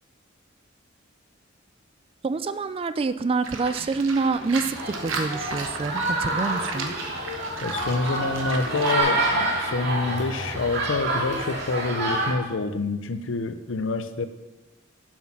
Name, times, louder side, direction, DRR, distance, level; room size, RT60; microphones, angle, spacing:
voice 1, 2.2-6.9, right 4 dB, 30° right, 13 dB, 0.3 m, -27 dB
Livestock farm animals working animals, 3.4-9.0, right 4 dB, 80° right, 1.1 m, -35 dB
sound 1, 4.7-12.3, right 1 dB, 55° right, 2.2 m, -27 dB
voice 2, 7.6-14.3, left 3 dB, 70° left, 10 dB, 0.6 m, -27 dB
7.4 x 6.3 x 5.8 m, 1.1 s
head